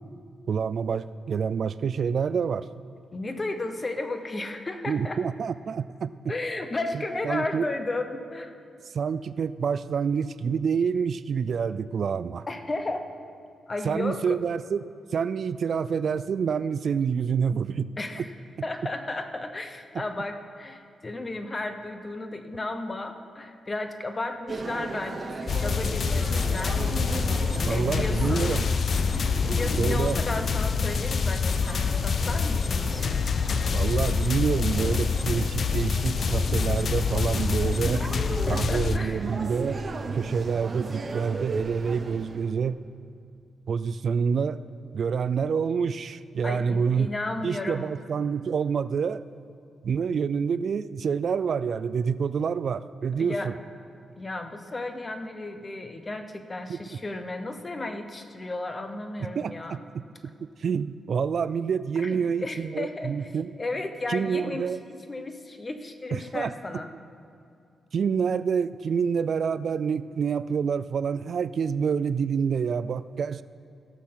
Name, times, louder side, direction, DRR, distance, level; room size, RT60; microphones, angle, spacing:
voice 1, 0.5-2.7 4.9-6.1 6.9-7.7 8.9-12.5 13.8-14.9 15.1-17.9 18.2-18.3 19.9-20.0 27.6-28.7 29.8-30.2 33.7-38.0 38.5-39.8 40.1-42.8 43.7-44.6 44.9-47.1 47.4-49.2 49.8-53.5 56.7-57.0 59.3-60.0 60.4-63.5 64.1-64.8 66.1-66.5 67.9-73.4, right 6 dB, 55° right, 15 dB, 0.3 m, -27 dB
voice 2, 3.1-5.2 6.3-8.5 12.5-13.1 13.7-14.4 18.0-18.3 18.6-26.8 27.4-28.7 29.4-33.1 38.0-38.1 38.5-39.2 46.4-47.9 53.2-53.5 54.2-59.8 62.0-63.3 63.6-64.7 65.1-66.9, left 2 dB, 25° left, 7 dB, 0.8 m, -34 dB
sound 1, 24.5-42.5, right 3 dB, 35° right, 0.9 m, -37 dB
sound 2, 25.5-39.0, left 5 dB, 50° left, 0.4 m, -26 dB
16.5 x 6.6 x 5.8 m, 2.5 s
wide cardioid pair, 140°, 0 cm